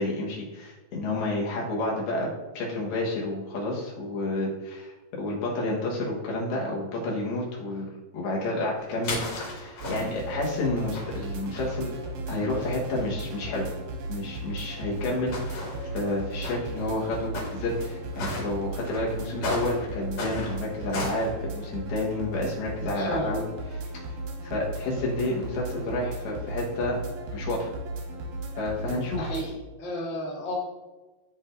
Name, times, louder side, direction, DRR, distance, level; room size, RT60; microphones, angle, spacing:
voice 1, 0.0-2.3 2.5-11.9 12.3-13.7 14.1-23.8 24.4-27.0 27.3-27.7 28.6-29.3, left 2 dB, 85° left, -3 dB, 3.4 m, -30 dB
sound 1, 8.7-10.4 10.9-11.8 12.6-12.7 12.9-13.0 14.0-14.1 14.8-16.0 16.4-16.6 17.3-17.8 18.1-18.4 18.8-21.3, left 1 dB, 50° left, 3.2 m, -35 dB
sound 2, 9.8-29.5, right 2 dB, 90° right, 2.9 m, -36 dB
voice 2, 22.8-23.3 29.2-29.5 29.8-30.5, equal, 25° left, -6 dB, 1.3 m, -32 dB
12.5 x 4.3 x 2.6 m, 1.2 s
omnidirectional pair, 4.3 m